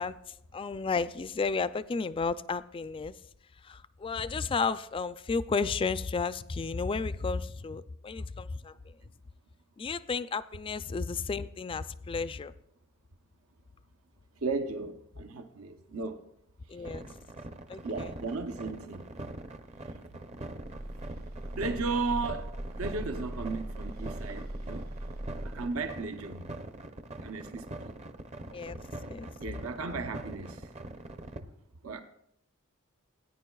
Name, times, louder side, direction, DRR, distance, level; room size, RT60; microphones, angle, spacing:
voice 1, 0.0-3.2 3.6-9.0 9.8-12.5 16.7-17.1 17.7-18.1 28.5-28.8 29.1-29.3, left 4 dB, 25° left, 0.3 m, -33 dB
voice 2, 14.4-16.2 17.8-19.1 21.6-24.9 25.4-26.5 27.2-27.9 29.4-30.7 31.8-32.0, right 3 dB, 75° right, 0.7 m, -35 dB
sound 1, 16.8-31.4, right 2 dB, 30° right, 0.6 m, -43 dB
sound 2, 20.6-25.9, right 1 dB, 50° right, 1.0 m, -40 dB
18.0 x 9.3 x 2.3 m
head